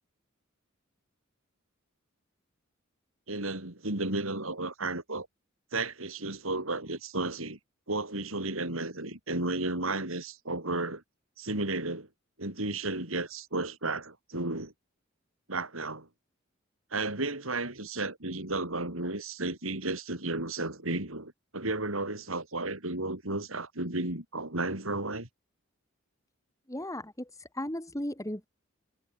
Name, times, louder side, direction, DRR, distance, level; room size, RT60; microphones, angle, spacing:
voice 1, 3.3-5.3 5.7-7.6 7.9-11.0 11.4-12.1 12.4-14.7 15.5-16.1 16.9-25.3, right 2 dB, 80° right, 5.4 m, -33 dB
voice 2, 26.7-28.5, left 1 dB, 15° left, 6.0 m, -36 dB
head